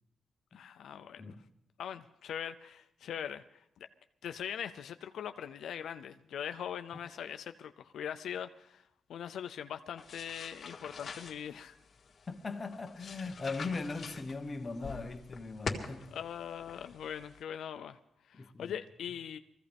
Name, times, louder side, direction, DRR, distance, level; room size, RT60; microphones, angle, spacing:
voice 1, 0.5-1.4 1.8-3.6 4.2-11.8 16.1-18.0 18.2-19.4, left 9 dB, 80° left, 0.5 m, -41 dB
sound 1, 10.0-17.4, left 4 dB, 50° left, 1.8 m, -45 dB
voice 2, 12.3-16.1 18.3-18.7, left 3 dB, 30° left, 1.0 m, -39 dB
22.5 x 15.0 x 3.5 m
cardioid pair, 120°, 0 cm